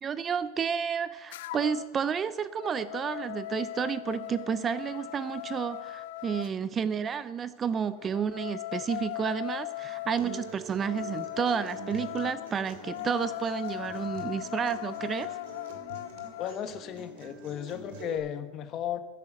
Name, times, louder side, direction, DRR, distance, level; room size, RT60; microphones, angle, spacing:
voice 1, 0.0-15.3, right 7 dB, 20° right, 15 dB, 0.4 m, -31 dB
sound 1, 1.3-1.9 2.3-6.5 8.0-16.6, left 16 dB, 75° left, 0.4 m, -39 dB
Acoustic guitar, 10.2-18.2, right 4 dB, 70° right, 2.7 m, -46 dB
voice 2, 16.4-19.0, left 10 dB, 35° left, 11 dB, 1.1 m, -35 dB
11.0 x 9.9 x 7.7 m, 1.3 s
supercardioid pair, 145°, 0 cm